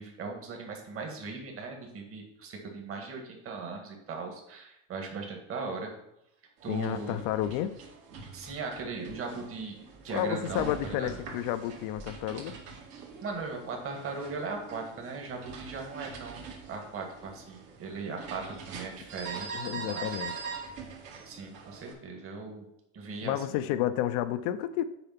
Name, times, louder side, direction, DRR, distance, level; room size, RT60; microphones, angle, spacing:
voice 1, 0.0-5.9 6.6-7.2 8.3-11.1 13.2-16.4 16.7-20.1 21.3-22.7 22.9-23.6, right 4 dB, 35° right, 1.8 m, -38 dB
sound 1, 6.6-21.9, right 5 dB, 60° right, 2.2 m, -43 dB
voice 2, 6.7-7.8 10.1-12.6 19.5-20.3 23.2-24.8, left 12 dB, 55° left, 0.7 m, -31 dB
6.9 x 4.5 x 5.8 m
supercardioid pair, 105°, 38 cm